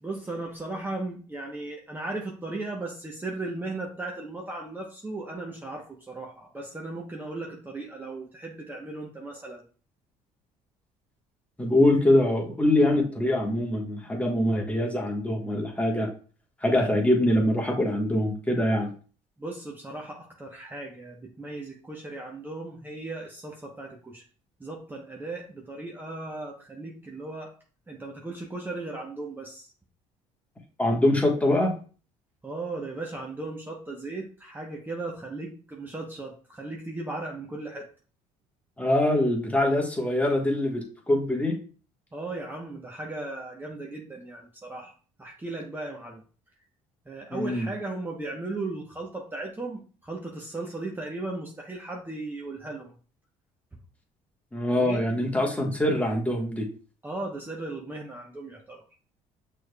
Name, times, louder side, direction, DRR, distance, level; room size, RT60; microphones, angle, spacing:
voice 1, 0.0-9.6 19.4-24.2 24.6-27.5 27.9-29.7 32.4-37.9 42.1-44.9 45.2-46.2 47.1-52.9 54.8-55.1 57.0-58.8, right 2 dB, 15° right, -1 dB, 0.8 m, -36 dB
voice 2, 11.6-16.1 16.6-18.9 30.8-31.7 38.8-41.6 47.3-47.7 54.5-56.7, left 1 dB, 10° left, 0 dB, 1.2 m, -24 dB
6.1 x 3.3 x 2.2 m, 0.39 s
supercardioid pair, 90°, 14 cm